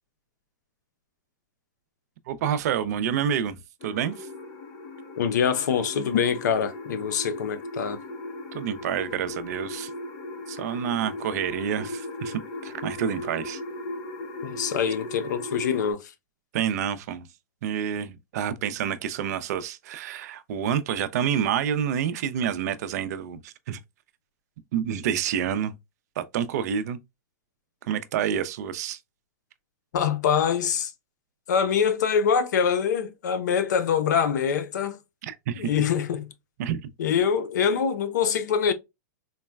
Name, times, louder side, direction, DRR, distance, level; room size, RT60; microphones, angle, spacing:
voice 1, 2.3-4.3 8.5-9.9 10.5-13.6 16.5-17.3 17.6-23.8 24.7-25.8 26.2-27.0 27.9-29.0 35.2-35.7 36.6-36.8, right 9 dB, 60° right, 0.5 m, -28 dB
sound 1, 3.8-15.9, left 2 dB, 35° left, 0.7 m, -37 dB
voice 2, 5.2-8.0 14.4-16.1 29.9-30.9 31.5-35.0 35.5-36.3 37.0-38.7, left 7 dB, 75° left, 0.6 m, -24 dB
3.9 x 2.1 x 2.2 m
hypercardioid pair, 125°, 10 cm